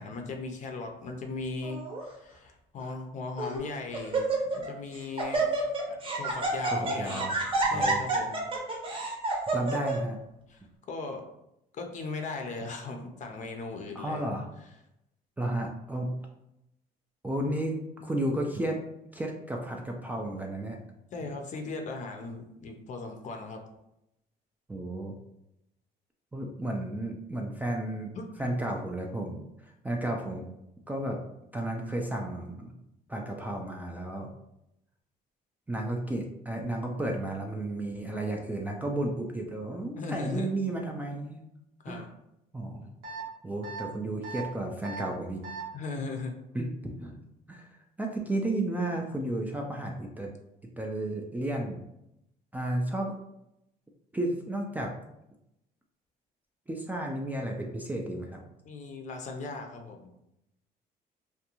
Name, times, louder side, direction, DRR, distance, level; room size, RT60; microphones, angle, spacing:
voice 1, 0.0-5.5 5.9-7.3 7.7-8.4 10.5-11.3 11.7-14.2 21.1-23.6 28.1-28.5 40.0-40.5 41.8-42.1 45.7-46.4 58.6-60.1, left 3 dB, 45° left, 3 dB, 0.5 m, -38 dB
Laughter, 1.6-2.0 2.8-2.9 3.4-3.6 3.9-4.7 4.9-10.0, right 2 dB, 30° right, 0.7 m, -29 dB
voice 2, 6.7-7.4 7.7-8.1 9.5-10.2 14.0-14.5 15.4-16.1 17.2-18.8 19.1-20.8 24.7-25.2 26.3-28.1 28.4-30.5 30.9-31.2 31.5-32.7 33.1-34.3 35.7-41.4 41.9-42.1 42.5-42.9 43.4-45.4 46.5-47.2 47.5-47.7 48.0-50.3 50.8-51.8 52.5-53.2 54.1-54.9 56.7-58.4, right 1 dB, 10° right, 0 dB, 0.3 m, -33 dB
sound 1, 43.0-43.2 43.6-43.8 44.2-44.4 44.8-45.0 45.4-45.6, right 3 dB, 85° right, 0.9 m, -38 dB
2.5 x 2.2 x 2.8 m, 0.84 s
cardioid pair, 110°, 17 cm